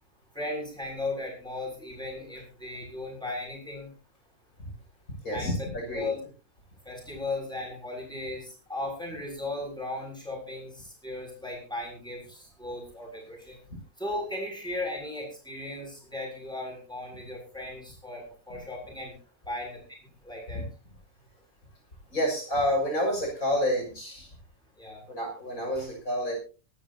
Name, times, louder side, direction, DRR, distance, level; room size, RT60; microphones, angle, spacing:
voice 1, 0.3-3.9 5.3-5.5 5.9-6.2 6.9-13.6 14.0-19.1 19.5-19.8 20.2-20.6 24.8-25.0, left 2 dB, 5° left, 0 dB, 7.1 m, -36 dB
voice 2, 5.2-6.1 22.1-24.3 25.1-26.3, equal, 65° left, 1 dB, 6.9 m, -29 dB
24.5 x 12.5 x 2.8 m, 0.34 s
omnidirectional pair, 1.6 m